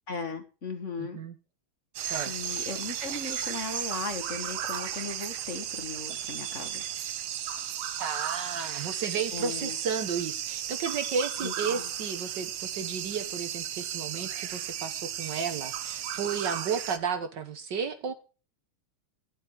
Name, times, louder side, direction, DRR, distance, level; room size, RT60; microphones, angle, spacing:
voice 1, 0.1-1.2 2.3-6.8 9.3-9.8 11.4-11.9, left 3 dB, 35° left, 6 dB, 1.9 m, -37 dB
voice 2, 1.0-1.3 2.1-2.7 8.0-18.1, right 6 dB, 60° right, 9 dB, 1.6 m, -33 dB
sound 1, 2.0-17.0, right 10 dB, 75° right, 1.7 m, -35 dB
11.5 x 7.6 x 4.9 m, 0.33 s
omnidirectional pair, 2.3 m